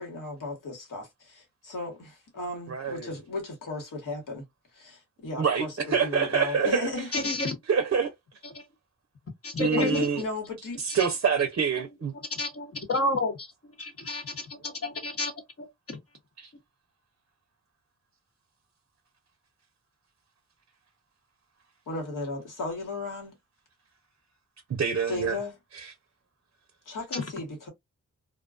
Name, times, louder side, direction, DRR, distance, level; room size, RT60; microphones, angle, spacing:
voice 1, 0.0-4.4 4.7-7.3 9.8-10.8 21.9-23.4 25.1-25.5 26.8-27.7, left 2 dB, 80° left, 1.3 m, -35 dB
voice 2, 2.7-3.1 5.4-6.9 7.7-8.1 9.6-10.2 10.8-12.1 16.4-16.5 24.7-25.4 25.7-25.9, right 6 dB, 45° right, 0.6 m, -26 dB
voice 3, 7.1-7.5 8.4-8.6 9.4-10.1 12.3-15.3 15.6-16.0 27.1-27.2, left 3 dB, 45° left, 1.0 m, -30 dB
2.3 x 2.2 x 2.4 m
cardioid pair, 60°, 32 cm